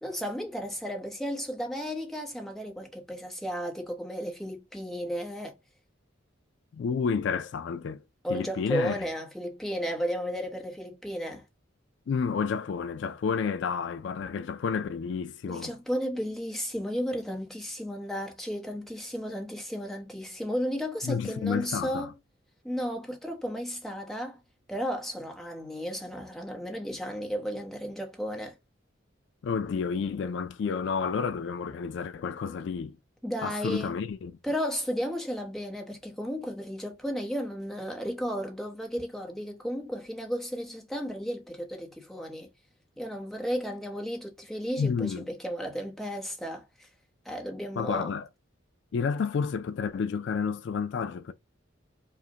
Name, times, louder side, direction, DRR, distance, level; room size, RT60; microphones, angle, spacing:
voice 1, 0.0-5.6 8.2-11.4 15.5-22.1 22.6-24.4 24.7-28.5 33.2-33.9 34.4-42.5 43.0-46.9 47.2-48.1, equal, ahead, 0.8 m, -34 dB
voice 2, 6.7-8.0 8.3-9.0 12.1-15.7 21.0-22.1 29.4-33.0 33.4-34.4 44.8-45.3 47.8-48.3 48.9-51.3, left 6 dB, 60° left, 0.3 m, -30 dB
5.1 x 2.1 x 2.8 m
head